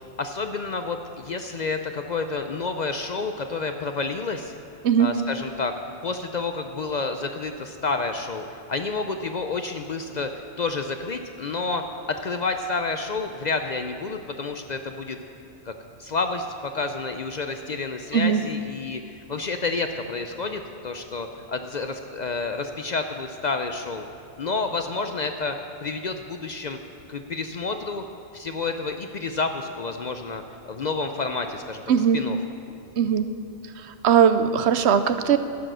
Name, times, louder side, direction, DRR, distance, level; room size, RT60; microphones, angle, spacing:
voice 1, 0.2-4.5 5.0-5.7 6.0-11.8 12.1-15.2 15.7-15.8 16.0-24.1 24.4-26.8 27.1-28.0 28.3-30.4 30.7-31.8 32.1-32.4, left 4 dB, 50° left, 6 dB, 0.5 m, -29 dB
voice 2, 18.1-18.4 31.9-32.2 33.0-33.3 33.8-35.4, right 8 dB, 75° right, 10 dB, 0.9 m, -19 dB
12.5 x 9.0 x 6.1 m, 2.5 s
omnidirectional pair, 1.2 m